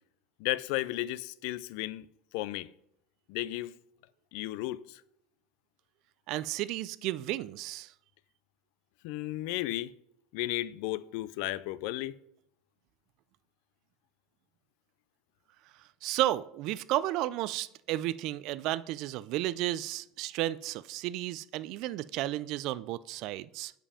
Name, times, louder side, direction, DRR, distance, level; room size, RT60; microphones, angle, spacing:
voice 1, 0.4-2.1 2.3-2.7 3.3-3.7 4.3-5.0 9.0-9.9 10.3-12.2, left 16 dB, 65° left, 0.3 m, -34 dB
voice 2, 6.3-7.9 16.0-23.7, right 15 dB, 55° right, 0.3 m, -33 dB
7.4 x 5.2 x 5.0 m
supercardioid pair, 145°, 0 cm